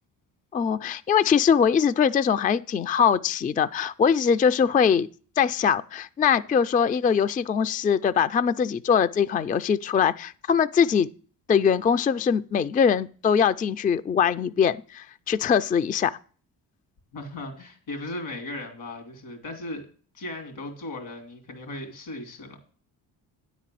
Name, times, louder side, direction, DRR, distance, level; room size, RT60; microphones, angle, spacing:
voice 1, 0.5-5.1 5.4-11.1 11.5-16.2, left 7 dB, 20° left, 0.3 m, -22 dB
voice 2, 17.1-19.9 20.1-22.6, left 1 dB, 80° left, 2.8 m, -37 dB
9.6 x 4.2 x 7.5 m
supercardioid pair, 60°, 45 cm